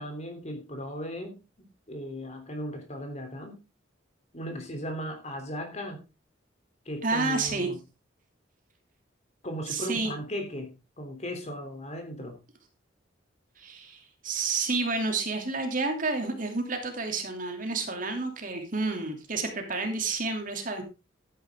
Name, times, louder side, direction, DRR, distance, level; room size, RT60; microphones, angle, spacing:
voice 1, 0.0-1.4 1.9-3.6 4.3-6.0 6.8-7.8 9.4-12.4, equal, 35° left, 4 dB, 3.3 m, -37 dB
voice 2, 7.0-7.7 9.7-10.1 13.6-20.8, right 3 dB, 45° right, 4 dB, 2.9 m, -30 dB
12.5 x 10.0 x 3.7 m, 0.28 s
head